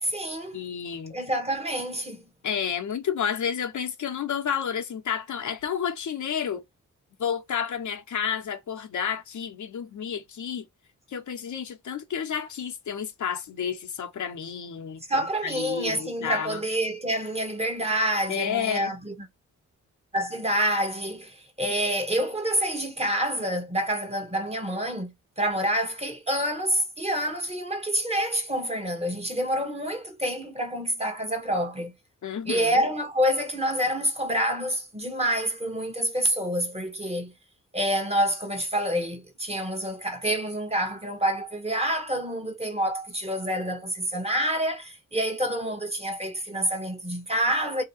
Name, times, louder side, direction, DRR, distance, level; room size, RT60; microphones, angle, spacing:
voice 1, 0.0-0.6 1.1-2.2 15.1-19.1 20.1-31.9 32.5-37.3 37.7-47.8, equal, 20° right, 1.0 m, -27 dB
voice 2, 0.5-1.1 2.4-6.6 7.2-10.7 11.1-16.6 18.3-19.0 32.2-32.8, left 8 dB, 65° left, 0.8 m, -31 dB
2.9 x 2.8 x 2.7 m
cardioid pair, 80°, 32 cm